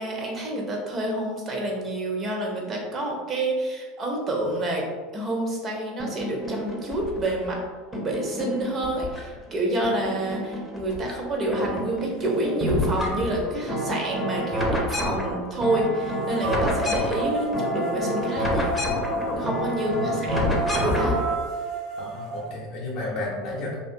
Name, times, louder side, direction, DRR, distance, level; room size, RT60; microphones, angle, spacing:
voice 1, 0.0-4.8 5.1-7.6 7.9-18.8 19.4-21.2, right 1 dB, 35° right, 0 dB, 0.7 m, -28 dB
sound 1, 6.0-7.5 7.9-9.5 9.8-11.1 11.4-21.4, equal, 10° left, 0.6 m, -28 dB
sound 2, 12.6-12.7 13.3-15.2 16.4-22.4, right 1 dB, 55° right, 1.1 m, -32 dB
voice 2, 19.7-20.2 22.0-23.7, left 2 dB, 60° left, -6 dB, 0.6 m, -33 dB
2.4 x 2.3 x 2.6 m, 1.4 s
hypercardioid pair, 85°, 0 cm